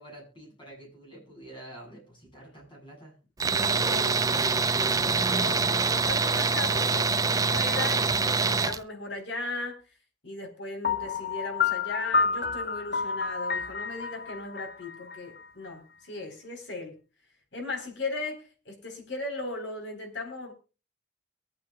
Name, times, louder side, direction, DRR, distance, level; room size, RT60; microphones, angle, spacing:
voice 1, 0.0-3.1, right 1 dB, 25° left, 8.0 m, -47 dB
voice 2, 3.4-9.8 10.2-17.0 17.5-20.5, left 2 dB, 70° left, 3.8 m, -37 dB
Tools, 3.4-8.8, right 4 dB, 20° right, 0.5 m, -25 dB
Piano, 10.8-15.7, left 5 dB, 50° left, 0.9 m, -29 dB
23.5 x 8.8 x 2.3 m
head